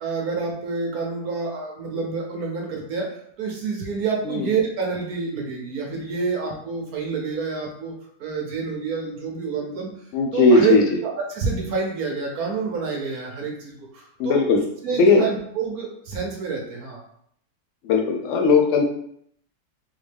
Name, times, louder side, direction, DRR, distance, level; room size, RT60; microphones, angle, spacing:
voice 1, 0.0-3.1 3.4-7.9 8.2-9.9 10.3-10.8 11.3-14.4 14.8-17.0, right 5 dB, 60° right, 0 dB, 1.2 m, -27 dB
voice 2, 10.1-11.0 14.2-14.6 14.9-15.2 17.8-18.8, left 3 dB, 75° left, 1 dB, 0.7 m, -18 dB
3.8 x 3.2 x 3.4 m, 0.69 s
omnidirectional pair, 1.9 m